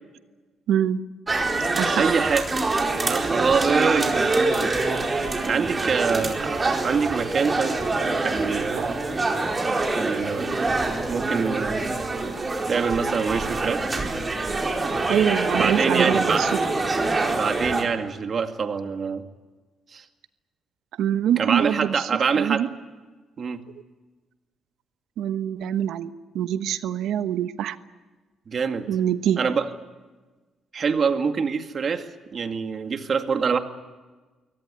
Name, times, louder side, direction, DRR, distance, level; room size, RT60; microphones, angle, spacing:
voice 1, 0.7-1.0 1.8-2.1 3.9-4.0 8.7-8.9 15.1-16.5 21.0-22.1 22.3-22.7 25.2-26.1 26.3-27.8 28.9-29.4, right 10 dB, 80° right, 12 dB, 1.1 m, -24 dB
sound 1, 1.3-17.8, right 3 dB, 25° right, 4.4 m, -25 dB
voice 2, 1.6-2.4 2.9-4.7 5.5-7.8 8.2-9.0 9.9-10.8 11.1-11.8 12.7-13.9 15.5-16.4 17.3-19.2 19.9-20.0 21.4-22.6 23.4-23.6 28.5-28.9 29.4-29.7 30.7-33.6, right 5 dB, 50° right, 7 dB, 2.1 m, -25 dB
23.5 x 18.0 x 10.0 m, 1.3 s
cardioid pair, 90°, 0 cm